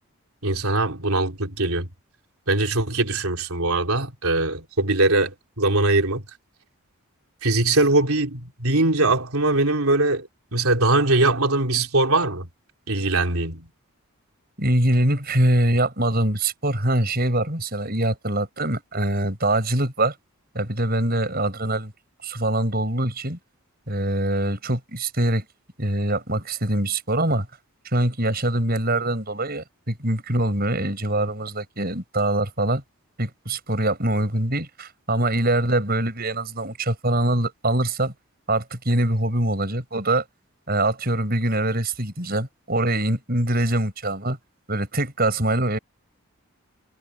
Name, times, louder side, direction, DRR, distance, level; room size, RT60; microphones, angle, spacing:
voice 1, 0.4-1.9 2.5-6.2 7.4-12.5 12.9-13.7, right 2 dB, 75° right, 3.6 m, -21 dB
voice 2, 14.6-20.1 20.5-21.9 22.2-23.4 23.9-25.4 25.8-27.5 27.8-32.8 33.2-38.1 38.5-40.2 40.7-44.4 44.7-45.8, right 1 dB, 45° right, 6.6 m, -23 dB
head